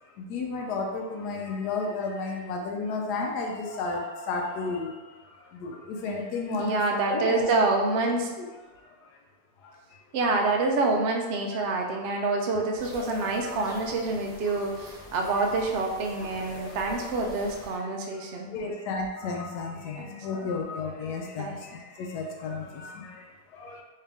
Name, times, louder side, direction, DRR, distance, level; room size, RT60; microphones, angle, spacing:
voice 1, 0.0-7.4 8.4-8.5 8.8-8.9 9.6-9.8 10.4-10.5 11.5-12.0 13.4-13.5 18.5-23.8, left 3 dB, 85° left, 1 dB, 1.1 m, -33 dB
voice 2, 6.5-8.3 10.1-18.5 19.9-20.5 21.4-21.6, right 3 dB, 80° right, 1 dB, 0.5 m, -27 dB
sound 1, 12.8-17.8, left 1 dB, 5° left, 0.4 m, -43 dB
3.3 x 2.8 x 3.4 m, 1.2 s
omnidirectional pair, 1.7 m